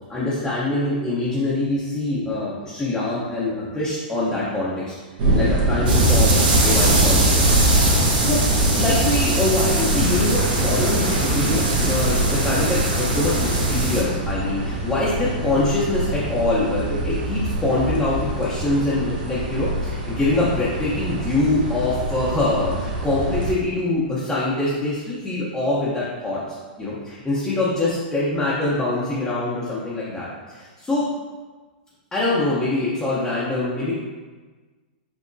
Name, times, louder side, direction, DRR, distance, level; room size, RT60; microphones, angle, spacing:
voice 1, 0.1-4.9 5.3-8.0 8.3-8.4 8.8-26.4 26.8-31.0 32.1-33.9, left 2 dB, 10° left, -9 dB, 0.8 m, -24 dB
sound 1, 5.2-23.5, right 1 dB, 65° right, 1.1 m, -25 dB
sound 2, 5.9-14.0, right 1 dB, 85° right, 1.4 m, -21 dB
6.1 x 2.8 x 2.6 m, 1.4 s
hypercardioid pair, 145°, 5 cm